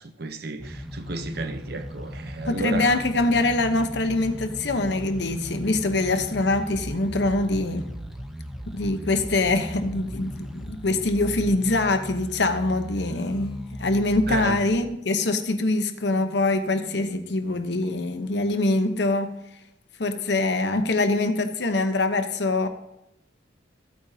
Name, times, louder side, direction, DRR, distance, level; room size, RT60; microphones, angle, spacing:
voice 1, 0.0-3.0 14.3-14.6, right 2 dB, 55° right, 0.8 m, -32 dB
sound 1, 0.6-14.8, equal, ahead, 0.8 m, -37 dB
voice 2, 2.5-7.9 8.7-19.3 20.0-22.7, left 2 dB, 60° left, 0.9 m, -24 dB
14.5 x 9.0 x 2.8 m
head